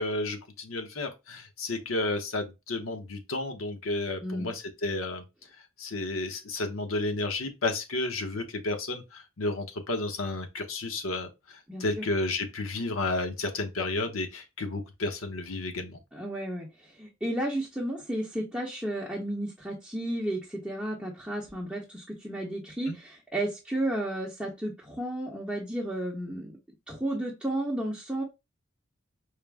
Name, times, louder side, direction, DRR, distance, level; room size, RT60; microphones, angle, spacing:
voice 1, 0.0-5.2 5.8-11.3 11.8-16.0 22.9-23.0, left 2 dB, 80° left, 0.9 m, -32 dB
voice 2, 4.2-4.5 11.7-12.1 16.1-26.6 26.9-28.2, right 1 dB, 5° right, 0.8 m, -33 dB
4.9 x 2.0 x 3.4 m
head